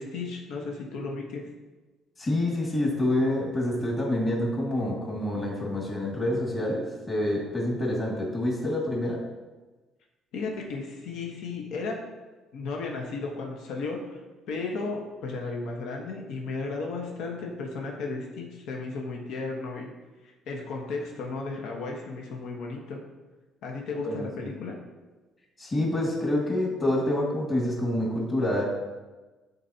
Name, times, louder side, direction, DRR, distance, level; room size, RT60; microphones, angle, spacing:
voice 1, 0.0-1.4 10.3-12.0 12.5-14.2 14.5-19.9 20.5-23.0 23.6-24.8, left 3 dB, 65° left, 0 dB, 1.2 m, -34 dB
voice 2, 2.2-9.2 24.0-24.5 25.6-28.6, left 1 dB, 25° left, -4 dB, 2.1 m, -27 dB
12.0 x 4.2 x 2.9 m, 1.2 s
cardioid pair, 160°, 0 cm